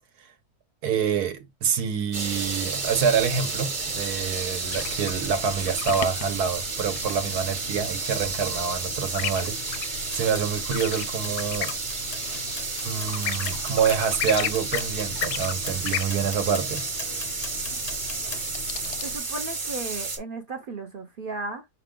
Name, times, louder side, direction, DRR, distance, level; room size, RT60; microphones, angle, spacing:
voice 1, 0.8-11.7 12.8-16.8, right 7 dB, 80° right, 1.3 m, -27 dB
sound 1, 2.1-20.2, right 4 dB, 35° right, 1.0 m, -31 dB
sound 2, 4.7-19.2, left 10 dB, 85° left, 1.1 m, -36 dB
sound 3, 10.0-18.4, left 5 dB, 45° left, 0.5 m, -42 dB
voice 2, 19.0-21.7, right 3 dB, 60° right, 0.5 m, -35 dB
5.7 x 2.2 x 3.6 m
omnidirectional pair, 1.6 m